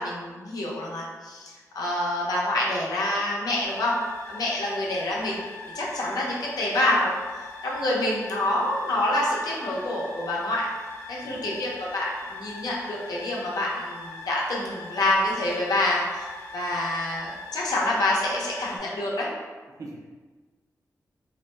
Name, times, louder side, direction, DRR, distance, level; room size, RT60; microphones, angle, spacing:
voice 1, 0.0-5.4 5.7-10.8 11.1-19.3, left 1 dB, 80° left, -4 dB, 0.6 m, -27 dB
sound 1, 3.6-18.8, left 2 dB, 35° left, 0.8 m, -41 dB
voice 2, 11.2-11.6 19.8-20.0, right 2 dB, 60° right, 0 dB, 0.4 m, -41 dB
2.5 x 2.1 x 3.1 m, 1.4 s
wide cardioid pair, 95°, 6 cm